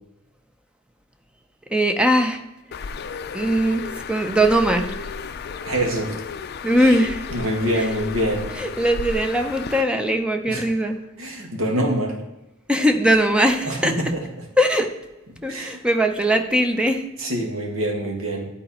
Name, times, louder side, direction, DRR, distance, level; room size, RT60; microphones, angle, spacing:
voice 1, 1.7-2.4 3.3-5.1 6.6-7.3 7.7-7.9 8.6-11.0 12.7-14.0 14.6-14.9 15.4-17.0, right 1 dB, 5° right, 6 dB, 0.6 m, -20 dB
Bird, 2.7-9.8, left 5 dB, 50° left, 0.4 m, -33 dB
voice 2, 5.6-6.1 6.8-6.9 7.3-8.5 10.5-10.6 11.2-12.2 13.7-14.2 15.5-15.8 17.2-18.5, right 1 dB, 85° right, 1 dB, 1.9 m, -25 dB
10.5 x 4.2 x 4.2 m, 0.99 s
head